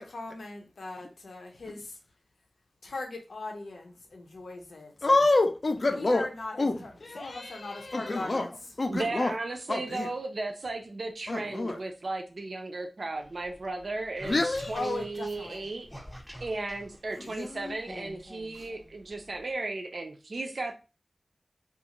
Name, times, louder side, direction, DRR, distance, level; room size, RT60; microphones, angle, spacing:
voice 1, 0.0-2.0 2.8-5.1 5.9-8.5 14.7-15.7, left 2 dB, 90° left, 0.6 m, -39 dB
voice 2, 5.0-6.3 6.6-9.3 9.7-10.1 11.3-11.8 14.2-14.7 17.2-17.8 18.5-18.7, left 2 dB, 50° left, 0.4 m, -28 dB
voice 3, 8.9-14.4 14.7-15.9 16.4-20.7, right 2 dB, 60° right, 0.4 m, -35 dB
sound 1, 13.2-19.5, equal, ahead, 0.7 m, -48 dB
2.5 x 2.4 x 2.9 m
wide cardioid pair, 90°, 0 cm